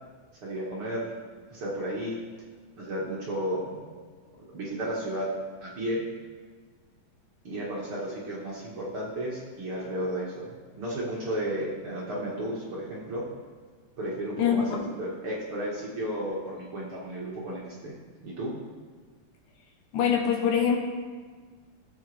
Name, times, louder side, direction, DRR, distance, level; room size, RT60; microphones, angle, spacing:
voice 1, 0.4-1.1 1.5-2.2 2.8-3.8 4.5-5.3 5.6-6.0 7.4-13.2 14.0-18.0 18.2-18.6, right 1 dB, 45° right, -5 dB, 2.1 m, -33 dB
voice 2, 14.4-14.8 19.9-20.8, left 7 dB, 75° left, 2 dB, 2.5 m, -24 dB
16.0 x 8.1 x 3.4 m, 1.5 s
omnidirectional pair, 3.9 m